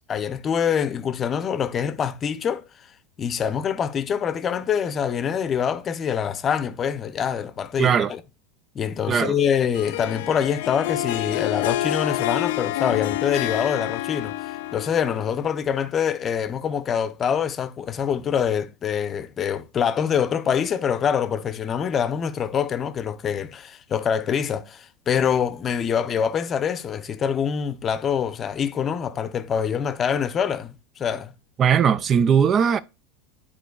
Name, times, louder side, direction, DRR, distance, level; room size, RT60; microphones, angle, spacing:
voice 1, 0.1-2.6 3.2-8.2 8.7-31.3, left 7 dB, 35° left, 0.7 m, -25 dB
voice 2, 7.8-8.1 9.1-9.3 31.6-32.8, right 7 dB, 35° right, 0.4 m, -19 dB
Harp, 9.7-15.5, left 15 dB, 65° left, 0.4 m, -28 dB
11.5 x 4.4 x 2.3 m
figure-of-eight pair, 80°, 0 cm